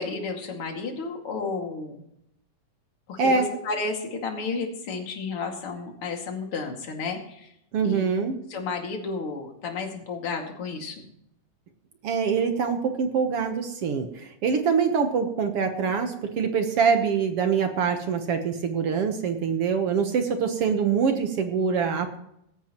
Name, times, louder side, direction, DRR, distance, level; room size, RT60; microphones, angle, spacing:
voice 1, 0.0-2.0 3.1-7.5 7.8-8.0 8.5-11.0, left 4 dB, 45° left, 2 dB, 2.8 m, -32 dB
voice 2, 7.7-8.4 12.0-22.2, right 6 dB, 60° right, 6 dB, 1.6 m, -24 dB
17.5 x 14.0 x 3.0 m, 0.75 s
omnidirectional pair, 3.9 m